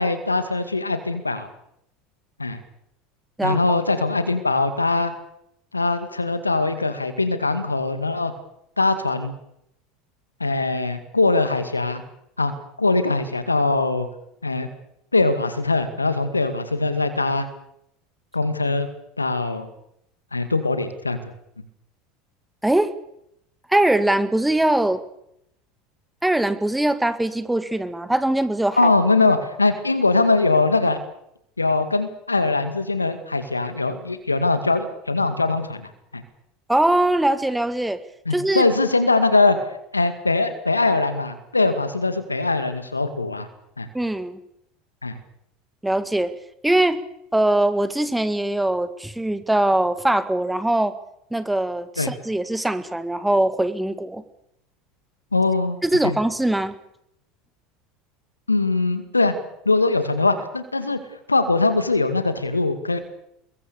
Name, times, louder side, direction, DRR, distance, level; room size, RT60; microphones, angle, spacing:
voice 1, 0.0-1.5 2.4-2.6 3.4-5.1 5.7-8.3 8.8-9.3 10.4-12.0 12.4-12.5 12.8-14.1 14.4-14.7 15.1-17.5 18.3-18.9 19.2-19.7 20.3-21.2 28.8-31.0 31.6-36.2 38.3-39.6 39.9-43.5 43.8-43.9 45.0-45.2 52.0-52.1 55.3-55.8 56.0-56.2 58.5-59.3 59.7-61.0 61.3-63.0, left 3 dB, 90° left, 10 dB, 2.1 m, -21 dB
voice 2, 23.7-25.0 26.2-28.9 36.7-38.0 38.3-38.7 43.9-44.4 45.8-46.3 46.6-47.0 47.3-51.0 51.3-54.2 55.8-56.7, right 1 dB, 5° right, 12 dB, 1.8 m, -21 dB
25.0 x 22.0 x 7.0 m, 0.77 s
figure-of-eight pair, 75°, 0 cm